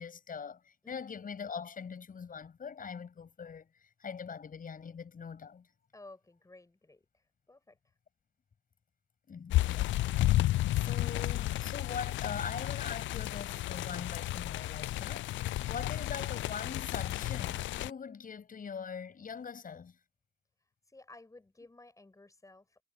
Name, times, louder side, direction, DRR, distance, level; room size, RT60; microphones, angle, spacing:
voice 1, 0.0-5.7 9.3-10.2 10.7-20.0, left 6 dB, 45° left, 7.3 m, -42 dB
voice 2, 5.9-7.0 7.5-7.8 20.9-22.8, left 2 dB, 15° left, 7.2 m, -55 dB
sound 1, 9.5-17.9, left 16 dB, 70° left, 0.4 m, -32 dB
cardioid pair, 90°, 20 cm